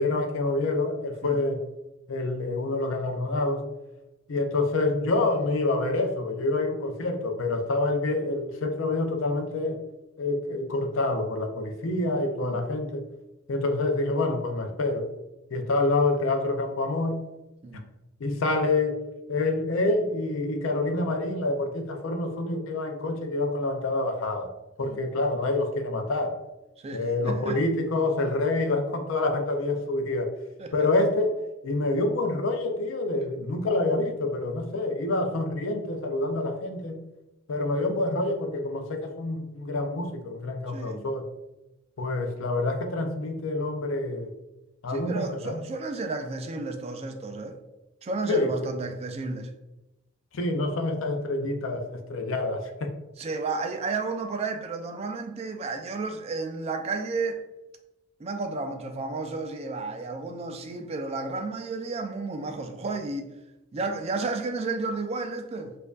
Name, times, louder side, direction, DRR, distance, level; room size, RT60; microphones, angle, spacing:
voice 1, 0.0-1.6 2.1-3.7 4.3-9.8 10.2-13.0 13.5-15.1 15.5-17.2 18.2-24.5 24.8-26.4 26.9-30.3 30.7-37.0 37.5-41.2 42.0-44.3 44.8-45.6 48.3-48.5 50.3-52.9, left 2 dB, 65° left, 0.5 m, -27 dB
voice 2, 26.8-27.6 30.6-30.7 40.7-41.1 44.9-47.6 48.0-49.5 53.2-57.4 58.2-63.3 63.7-65.8, right 3 dB, 30° right, 0.3 m, -32 dB
4.4 x 2.5 x 2.3 m
head